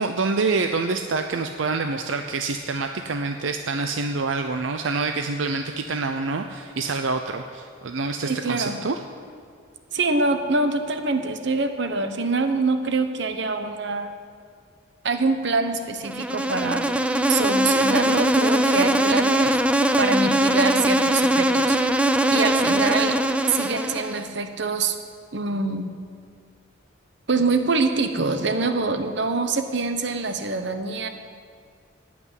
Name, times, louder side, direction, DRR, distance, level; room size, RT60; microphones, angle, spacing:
voice 1, 0.0-9.0, right 3 dB, 80° right, 6 dB, 0.6 m, -26 dB
voice 2, 8.3-8.8 9.9-14.1 15.0-16.8 17.3-19.6 20.0-21.8 22.3-23.2 23.5-24.9 25.3-25.9 27.3-31.1, right 3 dB, 65° right, 7 dB, 1.0 m, -25 dB
Insect, 16.0-24.3, right 1 dB, 5° right, 0.5 m, -21 dB
16.5 x 6.1 x 9.8 m, 2.1 s
head